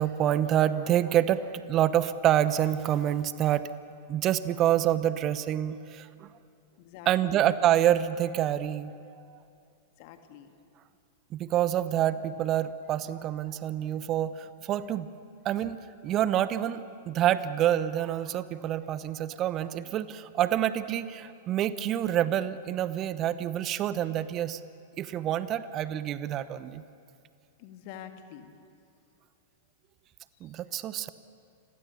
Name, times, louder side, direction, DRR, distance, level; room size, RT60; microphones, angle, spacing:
voice 1, 0.0-3.7 4.1-6.3 7.1-9.4 11.3-15.1 15.4-24.6 25.0-26.8 30.4-31.1, right 11 dB, 30° right, 15 dB, 0.9 m, -27 dB
voice 2, 6.8-7.4 10.0-10.5 27.6-28.5 30.4-30.6, left 10 dB, 45° left, 7 dB, 1.8 m, -46 dB
29.5 x 22.0 x 6.9 m, 2.5 s
figure-of-eight pair, 95°, 0 cm